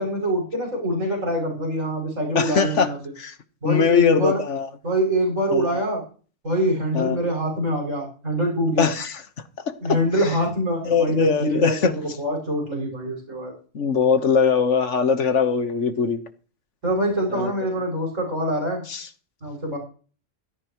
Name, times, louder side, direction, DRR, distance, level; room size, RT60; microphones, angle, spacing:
voice 1, 0.0-3.0 3.6-4.4 4.8-6.0 6.4-8.9 9.8-13.5 16.8-18.8 19.4-19.8, equal, 85° right, 7.4 m, -24 dB
voice 2, 2.4-2.9 3.2-3.3 3.6-4.7 5.5-5.7 6.9-7.2 8.8-9.1 9.6-10.0 10.9-11.9 13.7-16.2 17.3-17.5 18.9-19.1, left 6 dB, 70° left, 1.7 m, -21 dB
16.5 x 14.0 x 3.1 m
omnidirectional pair, 1.3 m